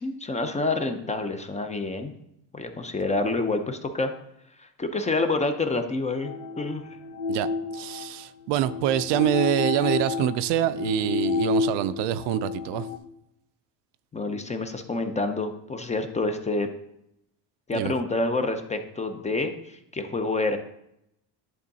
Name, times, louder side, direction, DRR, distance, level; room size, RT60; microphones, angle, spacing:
voice 1, 0.0-2.1 2.5-4.1 4.6-6.8 14.1-16.7 17.7-20.6, left 2 dB, 15° left, 0.6 m, -28 dB
sound 1, 6.2-13.0, left 6 dB, 75° left, 1.0 m, -30 dB
voice 2, 7.3-12.9 17.7-17.9, right 12 dB, 70° right, 0.5 m, -26 dB
10.5 x 3.7 x 4.1 m
cardioid pair, 120°, 44 cm